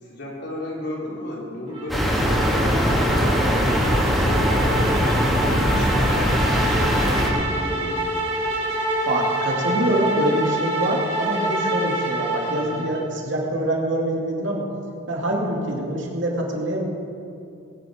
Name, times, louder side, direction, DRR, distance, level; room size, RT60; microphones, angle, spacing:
voice 1, 0.0-5.0 5.4-8.1, left 1 dB, 55° left, -4 dB, 4.0 m, -34 dB
sound 1, 1.7-13.1, right 1 dB, 30° right, 2.9 m, -27 dB
sound 2, 1.9-7.3, equal, ahead, 2.3 m, -20 dB
voice 2, 9.1-14.7 15.1-16.8, right 1 dB, 65° right, -1 dB, 2.6 m, -25 dB
20.0 x 10.0 x 5.2 m, 2.6 s
head